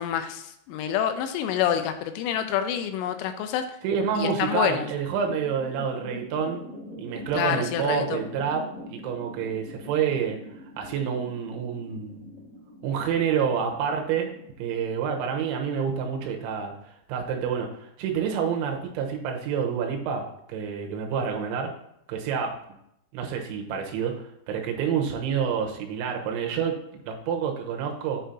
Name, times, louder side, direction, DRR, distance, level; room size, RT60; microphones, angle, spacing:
voice 1, 0.0-3.7 4.2-4.9 7.3-8.2, left 9 dB, 85° left, 8 dB, 3.1 m, -27 dB
voice 2, 3.8-6.6 7.0-10.4 10.8-12.3 12.8-14.3 14.6-16.7 17.1-21.7 22.1-22.5 23.1-26.7 27.1-28.2, right 7 dB, 80° right, 2 dB, 3.2 m, -28 dB
sound 1, 5.1-15.8, left 1 dB, 40° left, 0.6 m, -44 dB
8.2 x 4.4 x 3.9 m, 0.77 s
omnidirectional pair, 5.7 m